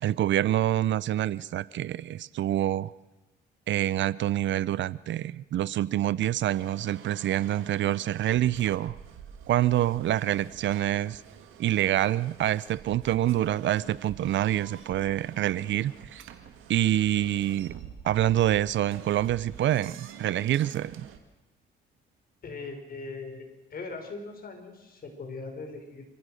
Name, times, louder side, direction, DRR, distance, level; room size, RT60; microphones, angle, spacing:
voice 1, 0.0-2.9 3.7-9.0 9.5-11.2 11.6-16.2 16.7-17.7 18.0-21.1, right 12 dB, 70° right, 20 dB, 0.7 m, -26 dB
sound 1, 6.5-21.2, right 9 dB, 90° right, 2.0 m, -47 dB
voice 2, 22.4-26.0, left 3 dB, 50° left, 4 dB, 5.5 m, -40 dB
27.5 x 15.0 x 6.4 m, 1.1 s
cardioid pair, 90°, 20 cm